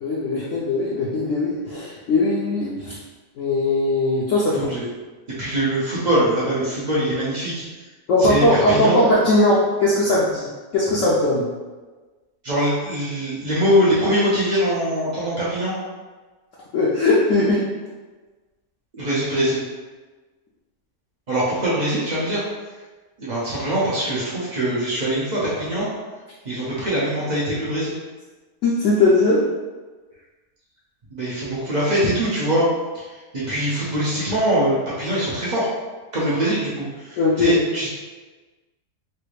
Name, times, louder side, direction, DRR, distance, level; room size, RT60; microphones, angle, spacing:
voice 1, 0.0-2.9 3.4-4.7 8.1-10.5 10.7-11.5 16.7-17.7 28.6-29.4 37.2-37.6, left 2 dB, 70° left, -6 dB, 0.7 m, -19 dB
voice 2, 5.4-7.5 8.2-9.0 12.4-15.7 18.9-19.6 21.3-22.4 23.2-25.9 26.4-27.9 31.1-32.7 33.3-35.7 36.1-37.9, right 1 dB, 90° right, -8 dB, 0.3 m, -22 dB
3.2 x 2.4 x 3.1 m, 1.3 s
omnidirectional pair, 1.8 m